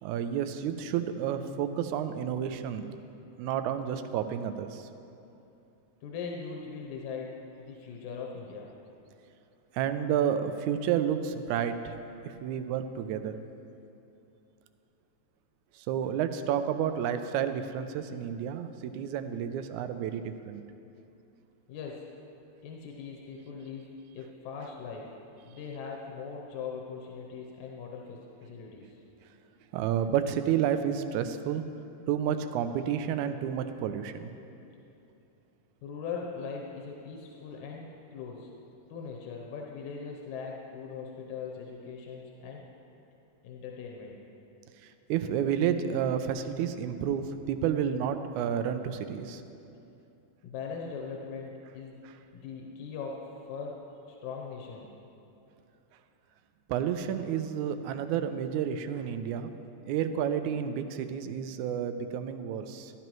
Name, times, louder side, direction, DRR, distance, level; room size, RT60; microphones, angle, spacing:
voice 1, 0.0-2.9 3.4-4.9 9.7-11.9 12.3-13.4 15.8-20.6 29.7-31.6 32.1-34.3 45.1-49.4 56.7-59.5 59.9-62.9, right 9 dB, 85° right, 9 dB, 2.0 m, -30 dB
voice 2, 6.0-8.7 21.7-22.1 22.6-25.1 25.4-29.0 35.8-38.5 38.9-42.7 43.4-44.2 50.4-52.0 52.3-54.9, left 5 dB, 90° left, 0 dB, 2.2 m, -40 dB
13.0 x 12.0 x 3.1 m, 2.8 s
omnidirectional pair, 3.3 m